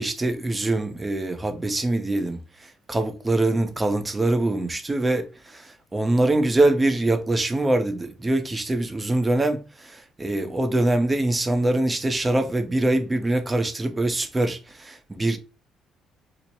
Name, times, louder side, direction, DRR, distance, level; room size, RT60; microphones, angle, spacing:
voice 1, 0.0-2.4 2.9-15.4, right 2 dB, 20° right, 0.6 m, -23 dB
3.0 x 2.0 x 4.1 m
cardioid pair, 100°, 0 cm